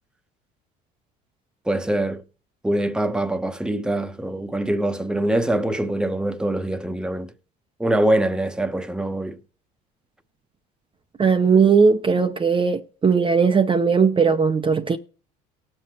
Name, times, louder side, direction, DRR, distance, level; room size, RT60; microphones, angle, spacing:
voice 1, 1.7-2.2 2.6-7.3 7.8-9.4, right 1 dB, 5° right, 1.0 m, -23 dB
voice 2, 11.2-15.0, right 5 dB, 25° right, 0.8 m, -18 dB
19.0 x 7.6 x 2.9 m
hypercardioid pair, 75°, 20 cm